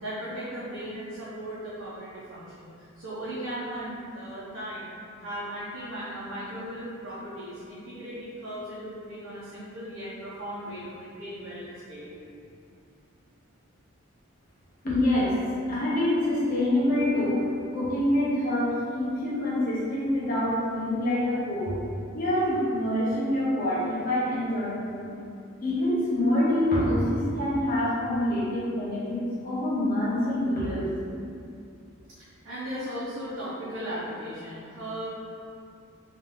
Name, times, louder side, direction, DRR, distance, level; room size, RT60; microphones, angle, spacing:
voice 1, 0.0-2.7 3.0-4.9 5.2-12.2 32.2-35.1, equal, 75° right, -11 dB, 0.9 m, -37 dB
voice 2, 14.8-15.4 15.7-21.8 22.1-25.1 25.6-30.9, left 1 dB, 45° left, -8 dB, 1.2 m, -26 dB
3.6 x 3.2 x 3.7 m, 2.5 s
head